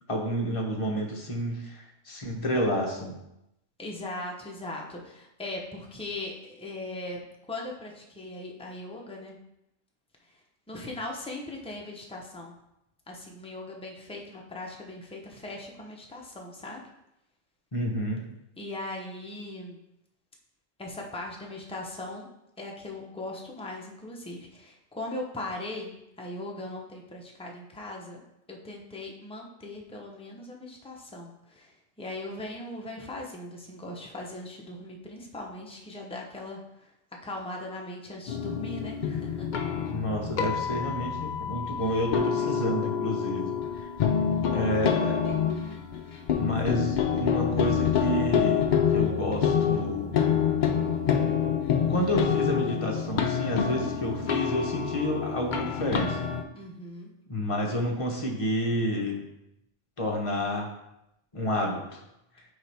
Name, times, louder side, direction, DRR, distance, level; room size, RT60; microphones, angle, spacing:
voice 1, 0.1-3.1 17.7-18.3 39.9-43.9 44.5-45.2 46.4-50.3 51.9-56.2 57.3-59.2 60.0-60.7 61.3-62.0, equal, 30° left, 0 dB, 0.9 m, -30 dB
voice 2, 3.8-9.4 10.7-12.5 13.1-16.8 18.6-19.8 20.8-22.3 22.6-28.2 28.5-31.7 32.0-36.9 37.2-39.5 56.5-57.1, left 2 dB, 5° left, -1 dB, 0.6 m, -39 dB
sound 1, 38.3-56.4, left 7 dB, 60° left, 0.5 m, -27 dB
6.7 x 4.4 x 3.4 m, 0.86 s
omnidirectional pair, 1.3 m